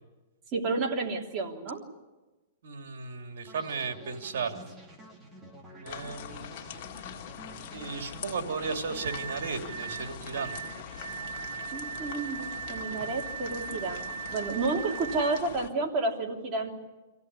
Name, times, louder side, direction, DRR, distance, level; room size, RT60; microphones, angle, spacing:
voice 1, 0.5-1.9 11.7-16.7, right 3 dB, 30° right, 1 dB, 3.2 m, -31 dB
voice 2, 2.6-4.6 5.8-6.5 7.7-10.6, right 5 dB, 75° right, 6 dB, 2.9 m, -35 dB
sound 1, 3.5-12.5, right 1 dB, 10° right, 2.8 m, -50 dB
sound 2, 5.9-15.7, left 9 dB, 50° left, 2.0 m, -43 dB
sound 3, 9.0-15.4, right 8 dB, 90° right, 1.4 m, -39 dB
26.0 x 16.0 x 9.7 m, 1.2 s
hypercardioid pair, 150°, 0 cm